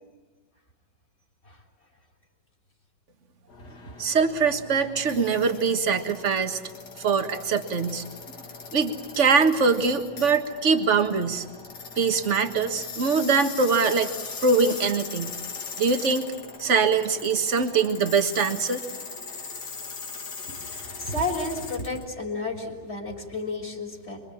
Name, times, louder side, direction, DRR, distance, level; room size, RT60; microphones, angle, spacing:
sound 1, 3.5-22.0, left 4 dB, 65° left, 2.5 m, -40 dB
voice 1, 4.0-6.6 7.0-8.0 8.7-11.5 12.0-14.1 14.4-15.3 15.8-16.3 16.6-18.8, right 5 dB, 40° right, 7 dB, 1.8 m, -23 dB
voice 2, 20.6-24.2, left 2 dB, 35° left, 2 dB, 3.9 m, -32 dB
27.0 x 24.5 x 8.5 m, 1.2 s
omnidirectional pair, 2.0 m